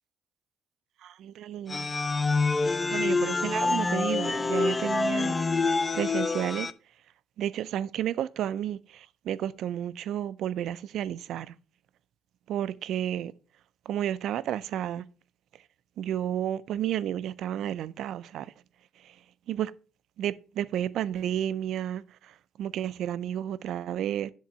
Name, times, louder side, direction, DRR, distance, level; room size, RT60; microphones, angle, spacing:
voice 1, 1.0-1.9 2.9-5.3 5.9-6.7 7.4-8.8 9.3-11.5 12.5-13.3 13.9-15.0 16.0-18.5 19.5-19.7 20.2-22.0 22.6-24.3, right 11 dB, 75° right, 0.3 m, -31 dB
sound 1, 1.7-6.7, left 3 dB, 30° left, 0.4 m, -26 dB
7.4 x 3.7 x 4.2 m
cardioid pair, 90°, 0 cm